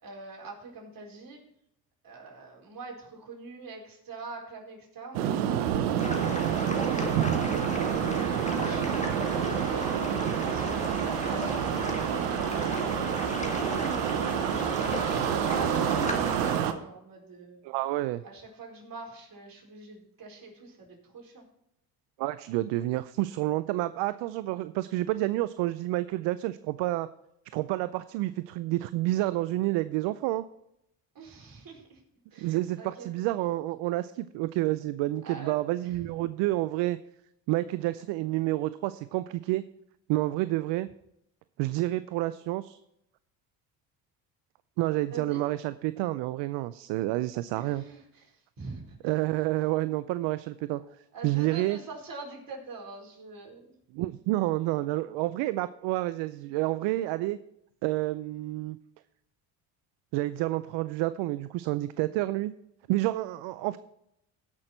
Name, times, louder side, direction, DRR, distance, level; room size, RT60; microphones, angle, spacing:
voice 1, 0.0-1.4 2.0-9.0 9.4-17.6 18.2-21.4 31.1-32.0 32.3-33.1 35.2-36.1 45.1-45.4 47.5-49.0 51.1-53.6, right 3 dB, 50° right, -1 dB, 4.5 m, -44 dB
sound 1, 5.1-16.7, right 9 dB, 90° right, 1.0 m, -28 dB
sound 2, 6.0-16.6, left 2 dB, 15° left, 2.0 m, -36 dB
voice 2, 17.6-18.2 22.2-27.1 27.5-30.4 32.4-37.0 37.5-39.6 40.1-40.9 41.6-42.8 44.8-47.8 49.0-50.8 51.2-51.8 53.9-57.4 57.8-58.8 60.1-62.5 62.9-63.8, right 17 dB, 70° right, 15 dB, 0.6 m, -29 dB
16.0 x 6.1 x 4.4 m, 0.80 s
supercardioid pair, 70°, 44 cm